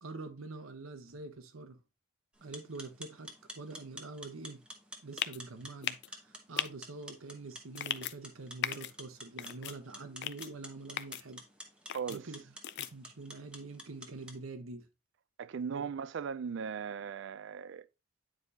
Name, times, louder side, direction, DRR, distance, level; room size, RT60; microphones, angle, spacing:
voice 1, 0.0-1.8 2.4-4.6 5.0-11.4 12.1-12.4 12.8-14.9 15.7-15.8, right 3 dB, 80° right, 1.0 m, -45 dB
sound 1, 2.4-14.4, equal, 5° right, 0.9 m, -50 dB
sound 2, 5.2-5.4 5.8-6.1 6.6-6.7 7.7-8.1 8.6-8.9 9.4-9.7 10.2-10.5 11.0-11.2 11.9-12.2 12.6-12.9, left 12 dB, 55° left, 0.4 m, -36 dB
voice 2, 11.9-12.3 15.4-17.9, right 6 dB, 60° right, 0.3 m, -38 dB
9.0 x 4.7 x 2.7 m
head